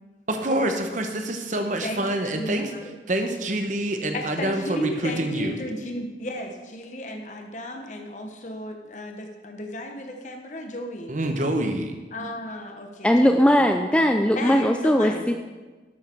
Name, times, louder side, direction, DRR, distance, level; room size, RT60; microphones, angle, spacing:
voice 1, 0.3-2.7 3.1-5.6 11.1-11.9, right 1 dB, 45° right, 5 dB, 1.0 m, -26 dB
voice 2, 1.5-2.9 4.1-11.1 12.1-13.7 14.4-15.3, left 1 dB, 40° left, 3 dB, 1.1 m, -34 dB
voice 3, 13.0-15.3, equal, 5° left, 5 dB, 0.3 m, -19 dB
12.0 x 6.4 x 4.6 m, 1.2 s
head